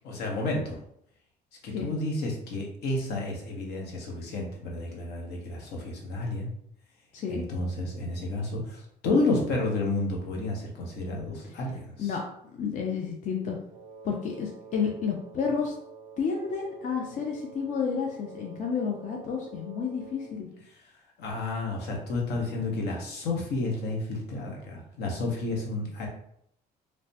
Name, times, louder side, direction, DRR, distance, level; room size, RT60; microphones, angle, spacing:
voice 1, 0.0-0.8 1.6-6.5 7.3-12.1 21.2-26.1, left 2 dB, 75° left, 0 dB, 0.8 m, -31 dB
voice 2, 7.1-7.5 12.0-12.2 12.6-13.6 14.0-15.7 16.2-20.5, left 6 dB, 50° left, 0 dB, 0.4 m, -30 dB
Wind instrument woodwind instrument, 13.7-20.5, right 5 dB, 30° right, 0.3 m, -47 dB
3.1 x 2.0 x 2.7 m, 0.71 s
cardioid pair, 110°, 17 cm